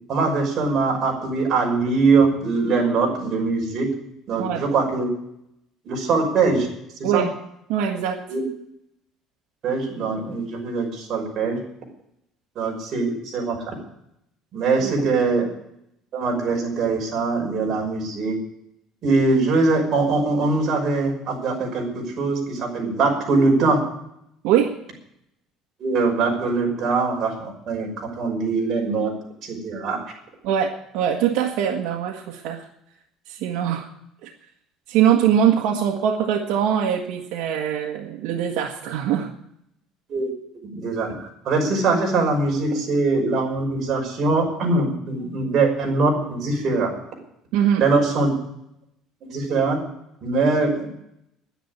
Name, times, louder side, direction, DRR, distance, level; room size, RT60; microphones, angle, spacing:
voice 1, 0.1-3.9 4.3-5.1 5.9-6.7 7.1-7.2 8.3-8.4 9.6-11.6 12.6-13.6 14.5-15.5 16.1-18.4 19.0-23.8 25.8-27.9 28.2-29.1 29.4-30.0 40.1-40.3 40.7-46.9 47.8-48.3 49.2-49.8 50.2-50.9, right 3 dB, 45° right, 0 dB, 5.8 m, -22 dB
voice 2, 7.7-8.2 14.8-15.0 24.4-24.7 30.4-32.6 33.3-33.9 34.2-34.3 34.9-39.3 47.5-47.9, right 9 dB, 75° right, -1 dB, 1.6 m, -22 dB
11.0 x 10.0 x 9.8 m, 0.77 s
cardioid pair, 140°, 0 cm